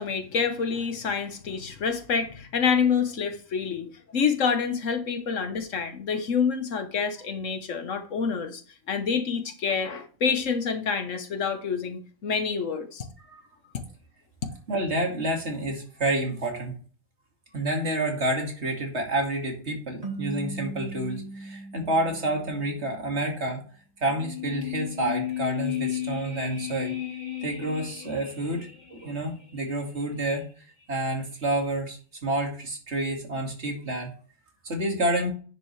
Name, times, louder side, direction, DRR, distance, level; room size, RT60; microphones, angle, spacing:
voice 1, 0.0-8.6 8.9-13.0, left 6 dB, 80° left, 8 dB, 1.5 m, -27 dB
voice 2, 14.7-16.8 17.5-23.6 24.0-26.9 27.4-30.4 30.9-34.1 34.6-35.3, right 1 dB, 60° right, 2 dB, 2.5 m, -29 dB
sound 1, 20.0-23.2, right 3 dB, 30° right, 1.6 m, -39 dB
sound 2, 24.0-29.3 29.6-29.7, left 12 dB, 35° left, 2.3 m, -34 dB
9.9 x 6.9 x 3.3 m, 0.41 s
omnidirectional pair, 1.3 m